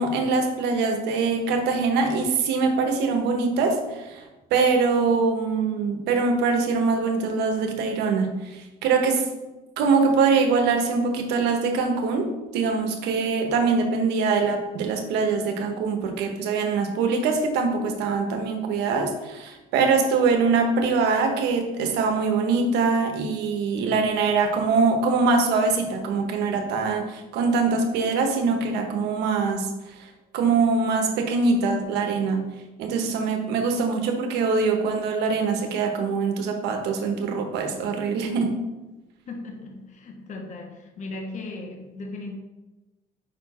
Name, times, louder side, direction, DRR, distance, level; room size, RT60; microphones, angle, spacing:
voice 1, 0.0-4.2 4.5-9.3 9.8-29.7 30.3-32.4 32.8-38.6, right 4 dB, 85° right, 5 dB, 1.0 m, -23 dB
voice 2, 39.3-42.4, left 2 dB, 45° left, 3 dB, 1.0 m, -37 dB
5.3 x 4.6 x 4.2 m, 1.1 s
cardioid pair, 110°, 17 cm